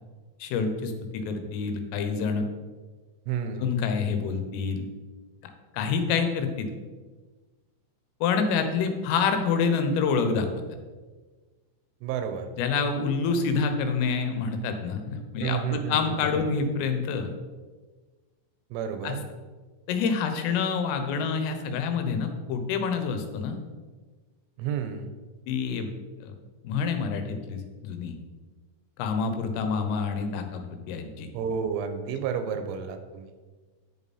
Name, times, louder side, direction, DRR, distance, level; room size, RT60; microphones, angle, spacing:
voice 1, 0.4-2.5 3.6-4.9 5.7-6.7 8.2-10.5 12.6-17.3 19.0-19.2 19.9-23.6 25.5-25.9 26.2-26.3 26.7-28.2 29.0-31.3, left 5 dB, 85° left, 7 dB, 3.6 m, -27 dB
voice 2, 3.3-3.7 12.0-12.5 15.4-16.5 18.7-19.2 24.6-25.1 31.3-33.3, right 7 dB, 85° right, 8 dB, 3.1 m, -31 dB
11.0 x 7.1 x 4.2 m, 1.4 s
omnidirectional pair, 5.7 m